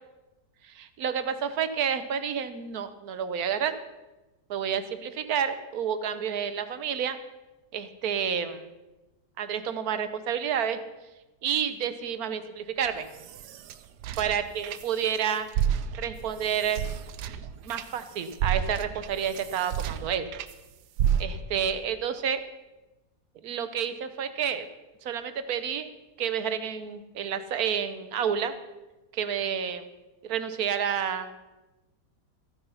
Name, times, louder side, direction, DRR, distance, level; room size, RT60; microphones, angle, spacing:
voice 1, 0.6-3.8 4.5-7.2 7.7-8.7 9.4-10.8 11.4-13.1 14.2-15.5 16.0-16.8 17.3-17.4 17.6-20.3 21.2-22.4 23.4-24.7 25.0-25.9 26.2-28.5 29.1-29.9 30.2-31.3, right 8 dB, 65° right, 11 dB, 1.4 m, -29 dB
sound 1, 12.8-15.2 15.5-20.5 21.0-21.7, right 9 dB, 85° right, 1.2 m, -31 dB
14.0 x 9.5 x 5.6 m, 1.1 s
omnidirectional pair, 1.7 m